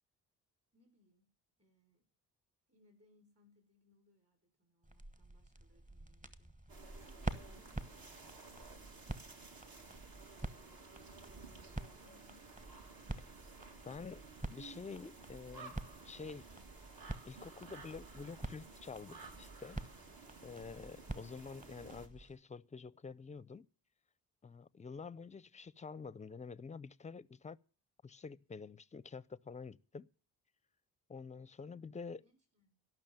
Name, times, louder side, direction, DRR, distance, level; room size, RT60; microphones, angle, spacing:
voice 1, 0.7-1.3 1.6-2.1 2.7-6.5 6.8-8.5 10.6-12.6 32.2-32.9, left 1 dB, 35° right, 5.9 m, -70 dB
sound 1, 4.8-22.4, right 1 dB, 20° right, 1.2 m, -48 dB
sound 2, 6.7-22.1, right 4 dB, 55° right, 2.0 m, -55 dB
voice 2, 13.8-14.2 14.5-15.8 16.0-16.5 17.2-19.8 20.4-23.7 24.4-27.6 28.0-30.1 31.1-32.2, left 5 dB, 20° left, 0.5 m, -48 dB
12.5 x 6.0 x 8.8 m
supercardioid pair, 55°, 41 cm